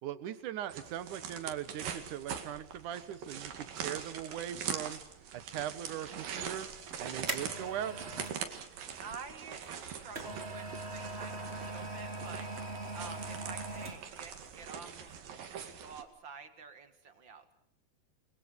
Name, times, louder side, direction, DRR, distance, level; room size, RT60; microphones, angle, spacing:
voice 1, 0.0-5.0 5.3-6.7 7.0-8.0, right 10 dB, 70° right, 14 dB, 2.8 m, -40 dB
sound 1, 0.7-16.0, right 7 dB, 85° right, 3.9 m, -43 dB
sound 2, 6.7-8.4 9.6-14.3 14.6-14.7, right 2 dB, 25° right, 1.9 m, -41 dB
voice 2, 9.0-17.5, right 5 dB, 40° right, 9 dB, 2.4 m, -49 dB
29.5 x 22.5 x 6.5 m, 0.63 s
omnidirectional pair, 3.9 m